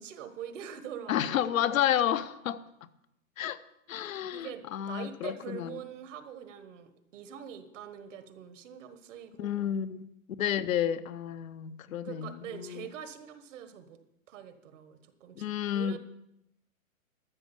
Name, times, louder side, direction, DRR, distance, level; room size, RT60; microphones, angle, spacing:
voice 1, 0.0-1.4 4.3-4.6 4.9-9.7 12.0-14.0 14.3-16.0, right 9 dB, 60° right, 10 dB, 1.4 m, -44 dB
voice 2, 1.1-2.6 3.4-3.6 3.9-5.8 9.4-10.1 10.4-12.9 15.4-16.0, left 10 dB, 70° left, 12 dB, 0.9 m, -31 dB
13.0 x 6.3 x 7.0 m, 0.82 s
hypercardioid pair, 145°, 42 cm